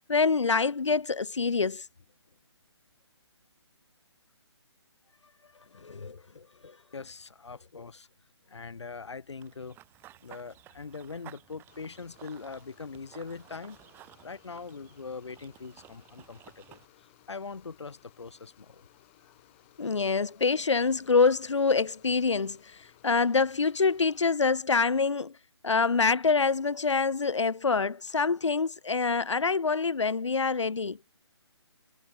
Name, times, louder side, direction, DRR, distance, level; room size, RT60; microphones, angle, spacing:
voice 1, 0.1-1.8 5.8-6.2 19.8-22.6 23.0-25.3 25.6-31.0, left 4 dB, 90° left, 0.6 m, -25 dB
voice 2, 6.9-8.1 8.5-9.8 10.2-13.8 14.2-16.8 17.3-18.9, left 4 dB, 75° left, 1.6 m, -42 dB
Run / Bird vocalization bird call bird song, 9.4-16.9, right 14 dB, 15° right, 3.8 m, -55 dB
sound 1, 11.7-24.3, left 20 dB, 25° left, 3.6 m, -61 dB
figure-of-eight pair, 150°, 15 cm